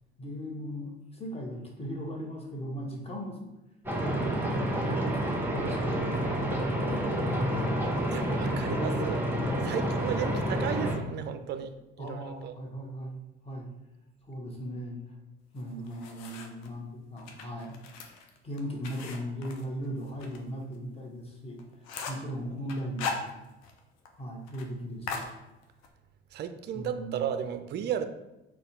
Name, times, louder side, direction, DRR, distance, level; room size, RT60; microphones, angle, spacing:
voice 1, 0.2-3.5 4.0-6.4 6.8-9.1 9.6-9.7 12.0-13.1 13.4-13.7 14.2-15.1 15.5-17.8 18.4-23.3 24.1-25.3 26.7-27.3, equal, 20° left, -1 dB, 1.2 m, -38 dB
sound 1, 3.8-10.9, right 1 dB, 5° right, 1.2 m, -29 dB
voice 2, 8.1-9.2 9.6-11.7 12.0-12.5 26.3-28.1, right 8 dB, 35° right, 10 dB, 0.4 m, -34 dB
sound 2, 15.6-16.7 17.2-20.4 20.7-20.8 21.2-21.3 21.6-22.3 22.7-23.8 24.1-24.2 24.5-24.7 25.1-25.9, left 5 dB, 65° left, 0.6 m, -39 dB
4.1 x 2.3 x 3.9 m, 0.95 s
hypercardioid pair, 55°, 30 cm